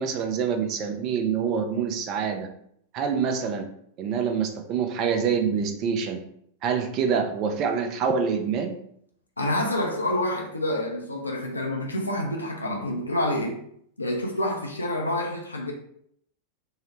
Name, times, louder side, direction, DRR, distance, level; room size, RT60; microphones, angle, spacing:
voice 1, 0.0-2.5 2.9-3.7 4.0-6.2 6.6-8.8, right 6 dB, 40° right, 0.4 m, -26 dB
voice 2, 9.4-13.6 14.0-15.7, left 1 dB, 80° left, 0.4 m, -27 dB
2.7 x 2.0 x 3.1 m
figure-of-eight pair, 90°, 0 cm